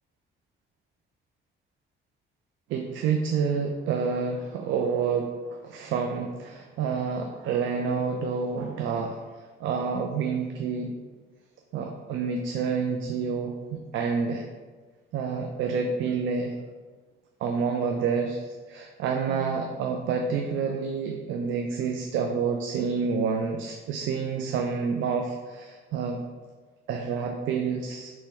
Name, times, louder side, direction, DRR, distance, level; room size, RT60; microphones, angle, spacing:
voice 1, 2.7-9.2 9.6-11.0 11.7-14.4 15.1-16.6 17.4-26.2 26.9-28.1, right 5 dB, 80° right, 3 dB, 0.4 m, -28 dB
4.3 x 3.0 x 3.4 m, 1.4 s
cardioid pair, 90°, 20 cm